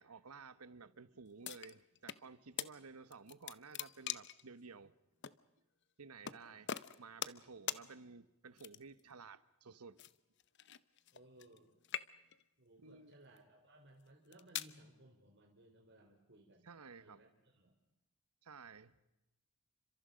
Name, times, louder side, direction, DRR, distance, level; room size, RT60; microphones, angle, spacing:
voice 1, 0.0-4.9 6.0-6.7 7.0-10.0 12.8-13.1 16.6-17.3 18.4-19.0, right 4 dB, 90° right, 1.1 m, -54 dB
sound 1, 1.4-2.2 2.6-2.7 3.1-4.4 5.2-5.4 6.2-6.4 6.7-7.4 7.7-7.8 8.6-9.0 10.0-11.6 11.8-12.4 13.1-13.4 14.1-14.7, left 10 dB, 50° left, 0.8 m, -43 dB
voice 2, 6.2-6.8 11.1-11.7 12.6-16.7 17.0-17.8, right 1 dB, 50° right, 3.3 m, -62 dB
29.5 x 26.0 x 5.2 m
head